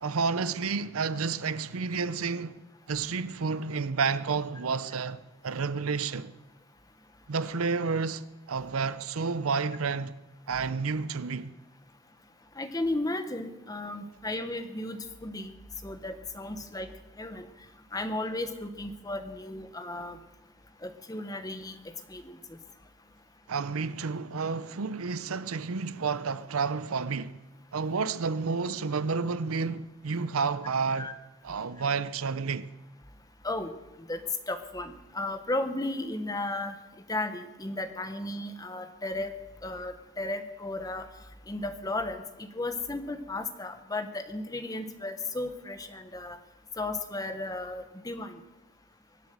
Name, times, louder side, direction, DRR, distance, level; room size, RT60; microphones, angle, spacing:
voice 1, 0.0-2.6 2.9-6.3 7.3-10.1 10.5-11.5 23.5-27.4 27.7-31.1 31.4-32.7, right 5 dB, 85° right, 0.6 m, -30 dB
voice 2, 12.6-15.5 15.8-16.9 17.2-17.5 17.9-20.2 20.8-21.7 22.1-22.4 31.0-31.1 33.4-33.7 34.0-34.2 34.5-36.8 37.1-39.3 39.6-41.1 41.5-46.4 46.8-48.4, left 2 dB, 15° left, 1.0 m, -34 dB
23.5 x 8.1 x 6.7 m
head